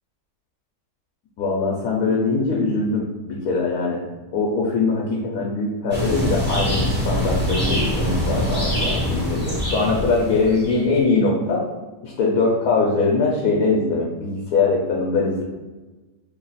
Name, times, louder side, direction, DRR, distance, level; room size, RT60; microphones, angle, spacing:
voice 1, 1.4-4.0 4.3-11.7 12.0-15.4, left 3 dB, 75° left, -2 dB, 1.1 m, -22 dB
sound 1, 5.9-10.8, equal, 10° right, 0.5 m, -24 dB
3.1 x 2.4 x 3.9 m, 1.2 s
omnidirectional pair, 1.6 m